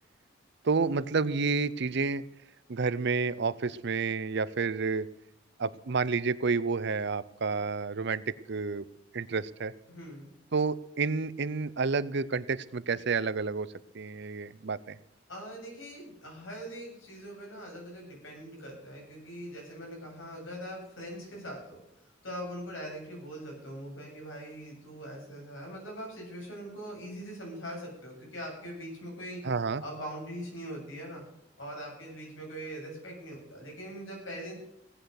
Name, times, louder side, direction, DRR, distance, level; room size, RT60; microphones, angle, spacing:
voice 1, 0.6-2.2 2.7-5.1 5.6-8.2 8.5-8.8 9.1-9.7 10.5-13.7 13.9-15.0 29.4-29.8, right 4 dB, 60° right, 17 dB, 0.7 m, -30 dB
voice 2, 9.9-10.3 15.3-21.8 22.2-29.4 29.8-31.2 31.6-34.6, equal, 80° left, -1 dB, 7.7 m, -42 dB
17.0 x 9.1 x 6.5 m, 0.80 s
head